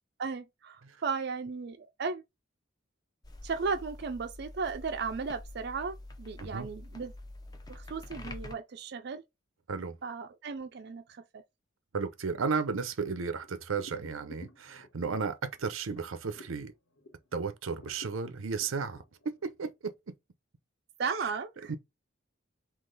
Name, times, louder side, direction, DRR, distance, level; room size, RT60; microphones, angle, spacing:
voice 1, 0.2-2.2 3.4-7.1 7.7-9.2 10.0-11.4 21.0-21.7, right 5 dB, 55° right, 0.4 m, -35 dB
sound 1, 3.2-8.5, left 1 dB, 20° left, 0.5 m, -46 dB
voice 2, 11.9-16.7 17.3-20.1 21.2-21.3 21.7-21.8, right 5 dB, 90° right, 0.7 m, -34 dB
sound 2, 12.7-17.3 17.7-19.5, equal, 80° left, 1.0 m, -53 dB
3.9 x 2.9 x 3.9 m
head